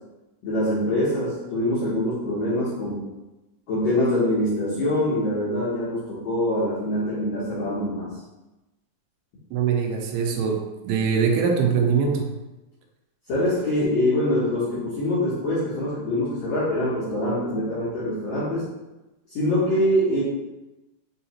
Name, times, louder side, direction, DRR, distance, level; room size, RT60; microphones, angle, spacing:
voice 1, 0.4-3.1 3.7-8.1 13.3-18.6 19.3-20.2, left 1 dB, 70° left, -9 dB, 1.8 m, -24 dB
voice 2, 9.5-12.3, right 6 dB, 85° right, 2 dB, 2.6 m, -22 dB
5.8 x 2.8 x 2.9 m, 1.0 s
omnidirectional pair, 4.4 m